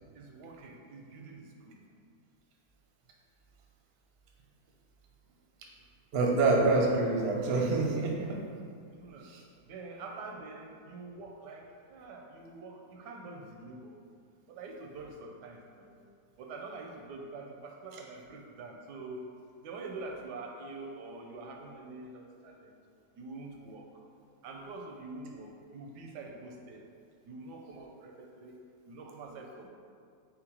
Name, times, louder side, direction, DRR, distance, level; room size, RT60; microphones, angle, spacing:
voice 1, 0.1-1.8 9.0-9.3 9.6-14.0 14.5-16.0 16.4-19.3 19.6-22.7 23.2-23.9 24.4-26.8 27.3-28.6 28.9-29.7, right 3 dB, 85° right, 1 dB, 1.2 m, -45 dB
voice 2, 6.1-8.4 9.2-9.4, right 3 dB, 60° right, -1 dB, 0.6 m, -26 dB
4.0 x 3.8 x 2.9 m, 2.3 s
omnidirectional pair, 1.7 m